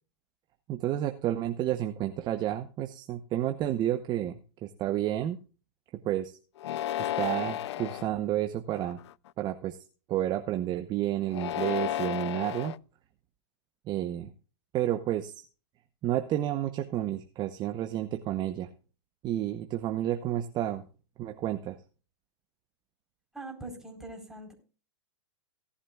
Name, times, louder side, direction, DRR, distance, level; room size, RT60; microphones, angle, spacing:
voice 1, 0.7-5.4 6.0-6.3 7.0-9.0 9.4-9.8 10.1-12.8 13.9-14.3 14.7-15.4 16.0-18.7 19.2-20.8 21.2-21.8, right 12 dB, 30° right, 7 dB, 0.9 m, -30 dB
sound 1, 6.6-8.1 8.8-9.3 11.3-12.8, left 12 dB, 70° left, 0.4 m, -33 dB
voice 2, 23.3-24.5, right 2 dB, ahead, 1 dB, 4.3 m, -42 dB
17.5 x 11.0 x 2.4 m, 0.36 s
hypercardioid pair, 130°, 15 cm